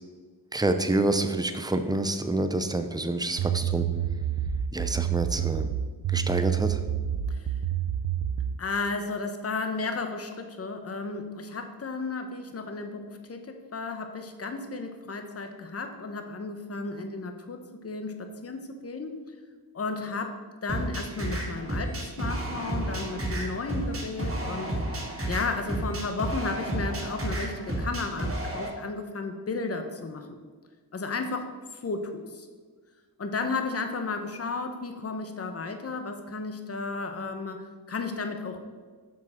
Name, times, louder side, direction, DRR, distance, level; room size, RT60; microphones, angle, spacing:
voice 1, 0.5-3.9 4.7-5.7 6.1-6.8, right 2 dB, 10° right, 8 dB, 0.5 m, -27 dB
sound 1, 3.4-8.6, right 9 dB, 90° right, 0.7 m, -28 dB
voice 2, 8.6-19.2 19.7-24.8 25.3-30.4 30.9-32.5 33.2-38.6, left 3 dB, 35° left, 6 dB, 0.9 m, -34 dB
sound 2, 20.7-28.7, right 1 dB, 35° right, 1.9 m, -31 dB
7.3 x 6.4 x 4.3 m, 1.5 s
wide cardioid pair, 110°, 40 cm